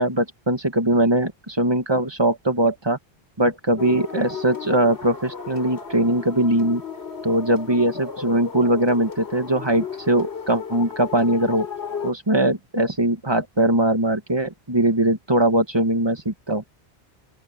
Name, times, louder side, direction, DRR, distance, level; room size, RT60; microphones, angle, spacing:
voice 1, 0.0-3.0 3.4-6.8 7.2-11.7 12.0-16.6, right 1 dB, 25° right, 2.0 m, -21 dB
sound 1, 3.8-12.1, left 6 dB, 75° left, 3.6 m, -34 dB
open air
omnidirectional pair, 1.1 m